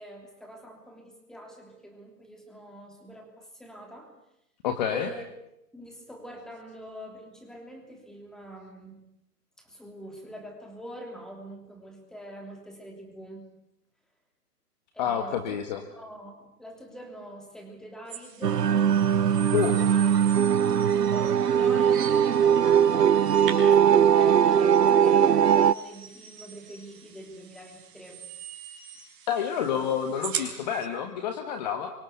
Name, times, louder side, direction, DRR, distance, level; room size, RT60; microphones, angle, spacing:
voice 1, 0.0-4.1 4.9-5.2 5.7-9.0 9.6-13.5 14.9-15.6 16.0-18.7 19.2-20.6 21.1-28.2 29.7-29.9, equal, ahead, 3 dB, 3.0 m, -44 dB
voice 2, 4.6-5.1 15.0-15.8 19.5-19.8 29.3-31.9, left 8 dB, 25° left, 7 dB, 1.6 m, -28 dB
sound 1, 18.1-30.9, right 8 dB, 35° right, 5.3 m, -42 dB
sound 2, 18.4-25.7, right 8 dB, 85° right, 1.0 m, -20 dB
27.5 x 25.0 x 8.1 m, 0.83 s
hypercardioid pair, 155°, 48 cm